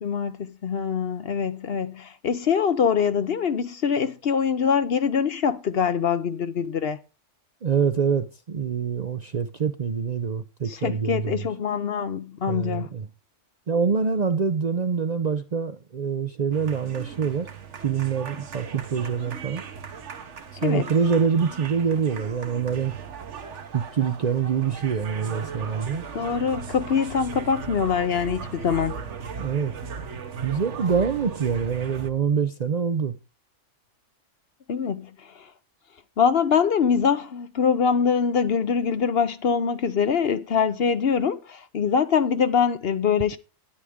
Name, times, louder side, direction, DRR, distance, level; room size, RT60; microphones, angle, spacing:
voice 1, 0.0-7.0 10.7-12.9 20.6-20.9 26.1-29.0 34.7-35.1 36.2-43.4, left 6 dB, 55° left, 0.9 m, -24 dB
voice 2, 7.6-11.5 12.5-13.1 13.7-17.5 17.8-19.6 20.6-23.0 23.7-26.1 29.4-29.7 30.4-33.1, right 6 dB, 45° right, 0.5 m, -25 dB
sound 1, 16.5-32.1, right 6 dB, 65° right, 1.4 m, -38 dB
12.5 x 9.8 x 3.6 m
omnidirectional pair, 1.3 m